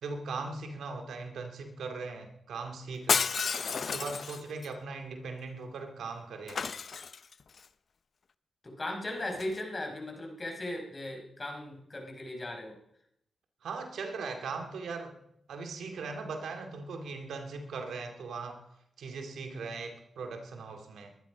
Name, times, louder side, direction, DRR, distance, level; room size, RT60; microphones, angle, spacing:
voice 1, 0.0-3.3 3.7-6.6 13.6-15.1 15.5-18.6 19.0-21.1, right 4 dB, 85° right, 5 dB, 2.2 m, -39 dB
Shatter, 3.1-4.7 6.5-7.6 9.3-9.6, left 5 dB, 65° left, 0.6 m, -31 dB
voice 2, 8.6-12.7, left 1 dB, 35° left, 2 dB, 5.2 m, -37 dB
21.5 x 11.5 x 5.1 m, 0.75 s
cardioid pair, 55°, 0 cm